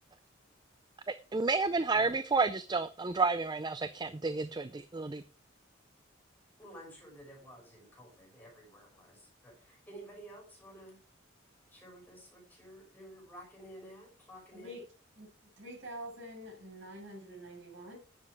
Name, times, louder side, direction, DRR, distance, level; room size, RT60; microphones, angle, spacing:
voice 1, 1.1-5.2, right 4 dB, 20° right, 13 dB, 0.4 m, -31 dB
voice 2, 6.6-11.0 11.7-14.7, right 1 dB, 10° left, -2 dB, 5.7 m, -52 dB
voice 3, 14.5-14.8 15.1-15.3 15.6-18.0, right 1 dB, 65° right, 0 dB, 6.8 m, -46 dB
11.0 x 7.6 x 4.7 m, 0.38 s
head